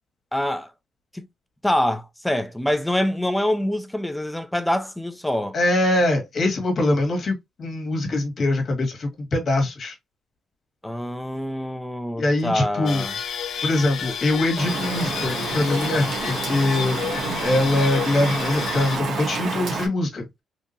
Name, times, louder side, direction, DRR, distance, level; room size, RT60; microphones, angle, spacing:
voice 1, 0.3-0.7 1.1-1.3 1.6-5.6 10.8-13.1, left 1 dB, 5° left, 0.4 m, -25 dB
voice 2, 5.5-9.9 12.2-13.0 13.6-17.0 17.4-20.3, left 2 dB, 45° left, 1.6 m, -23 dB
sound 1, 12.9-19.0, left 7 dB, 65° left, 0.6 m, -31 dB
Rain, 14.6-19.9, right 4 dB, 65° right, 1.4 m, -29 dB
3.6 x 2.8 x 2.6 m
cardioid pair, 125°, 0 cm